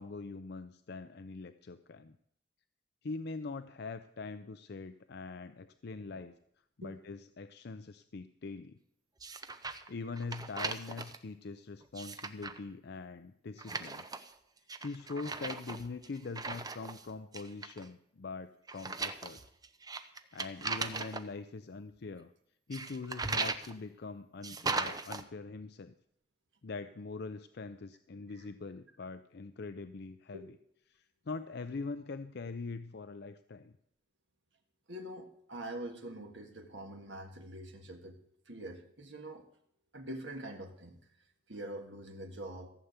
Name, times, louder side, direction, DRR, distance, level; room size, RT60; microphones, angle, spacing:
voice 1, 0.0-2.2 3.0-6.3 6.8-8.8 9.9-14.0 14.8-19.4 20.3-22.3 22.7-25.9 26.6-30.5 30.9-33.7, left 3 dB, 65° left, 10 dB, 0.5 m, -43 dB
sound 1, 9.2-9.9 10.2-11.2 11.8-12.6 13.6-14.3 14.7-17.0 17.3-17.9 18.7-21.2 22.7-23.7 24.4-25.2, right 4 dB, 20° right, 0.7 m, -38 dB
voice 2, 34.9-38.2 38.5-39.5 39.9-41.0 41.5-42.7, right 1 dB, 85° right, 3 dB, 1.7 m, -44 dB
15.0 x 6.9 x 8.1 m, 0.72 s
head